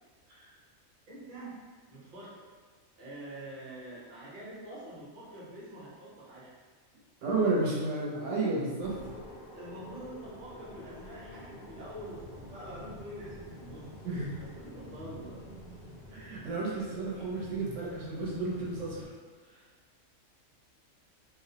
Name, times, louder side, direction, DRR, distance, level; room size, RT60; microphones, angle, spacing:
voice 1, 1.1-1.5 1.9-2.5 3.0-6.5 9.5-13.8 14.4-15.4, right 1 dB, 45° right, -7 dB, 0.8 m, -45 dB
voice 2, 7.2-8.9 14.0-14.4 16.1-19.0, right 3 dB, 75° right, -7 dB, 1.0 m, -31 dB
sound 1, 8.8-19.1, left 1 dB, 65° left, 0.6 m, -48 dB
2.4 x 2.0 x 2.7 m, 1.5 s
omnidirectional pair, 1.4 m